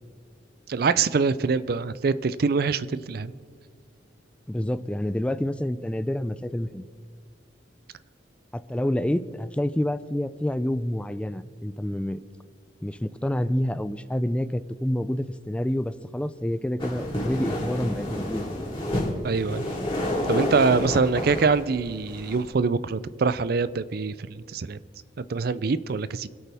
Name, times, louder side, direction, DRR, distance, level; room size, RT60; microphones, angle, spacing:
voice 1, 0.7-3.3 19.2-19.7 20.3-24.8 25.2-26.3, right 4 dB, 55° right, 16 dB, 0.4 m, -24 dB
voice 2, 4.5-6.8 8.5-12.2 12.8-18.5, left 1 dB, 5° left, 13 dB, 0.3 m, -28 dB
sound 1, 16.8-22.5, left 1 dB, 30° left, 3.3 m, -29 dB
25.5 x 8.7 x 3.5 m, 2.1 s
head